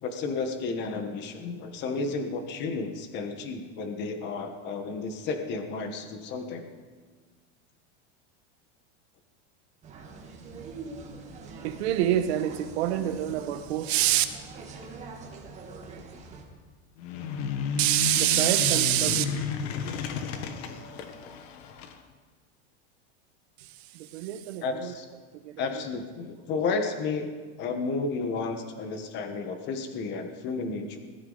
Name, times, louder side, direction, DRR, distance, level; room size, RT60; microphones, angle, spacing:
voice 1, 0.0-6.7 24.6-25.1 25.6-31.0, left 4 dB, 30° left, 6 dB, 1.4 m, -32 dB
sound 1, 9.8-16.4, right 4 dB, 20° right, 1.8 m, -43 dB
voice 2, 11.6-14.2 17.8-19.2 23.9-24.9 25.4-25.6, right 13 dB, 65° right, 8 dB, 1.4 m, -25 dB
sound 2, 17.0-22.0, left 6 dB, 60° left, 1.5 m, -33 dB
21.0 x 13.5 x 4.0 m, 1.5 s
supercardioid pair, 165°, 34 cm